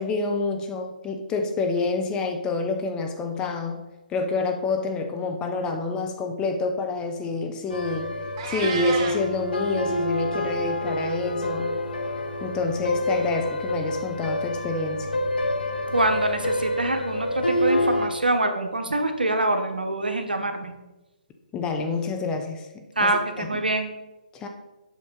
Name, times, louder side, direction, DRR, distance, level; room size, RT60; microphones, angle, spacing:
voice 1, 0.0-3.8 4.1-8.1 8.4-11.7 12.4-15.1 21.5-23.6 24.3-24.5, left 4 dB, 15° left, 4 dB, 0.7 m, -28 dB
sound 1, 7.7-18.1, left 1 dB, 85° left, 0.9 m, -27 dB
Meow, 8.4-9.2, right 5 dB, 35° right, 0.9 m, -31 dB
voice 2, 15.9-20.7 23.0-23.9, right 2 dB, 85° right, 6 dB, 1.0 m, -25 dB
7.6 x 5.4 x 3.9 m, 1.0 s
figure-of-eight pair, 135°, 5 cm